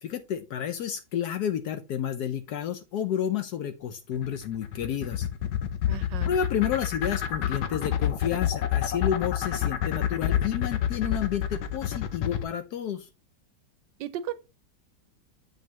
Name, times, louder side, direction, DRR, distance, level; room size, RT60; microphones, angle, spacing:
voice 1, 0.0-5.3 6.2-13.1, left 9 dB, 70° left, 1.0 m, -30 dB
sound 1, 4.2-12.4, left 11 dB, 85° left, 1.5 m, -28 dB
voice 2, 5.9-6.3 14.0-14.3, right 11 dB, 75° right, 1.2 m, -34 dB
7.7 x 5.3 x 2.9 m
omnidirectional pair, 2.1 m